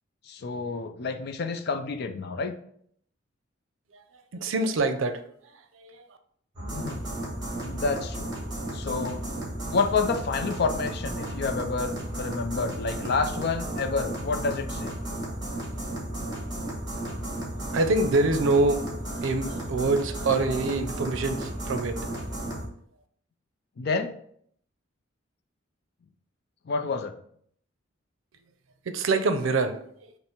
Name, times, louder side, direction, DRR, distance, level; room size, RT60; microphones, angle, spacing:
voice 1, 0.3-2.5 6.7-7.0 7.6-8.3 8.7-9.2 9.7-14.9 23.8-24.1 26.7-27.1, left 4 dB, 55° left, 7 dB, 0.4 m, -29 dB
voice 2, 4.3-6.1 17.7-22.2 28.9-30.1, right 3 dB, 75° right, 8 dB, 0.5 m, -26 dB
sound 1, 6.5-22.7, right 1 dB, 20° right, 1.3 m, -34 dB
5.5 x 2.1 x 4.4 m, 0.66 s
head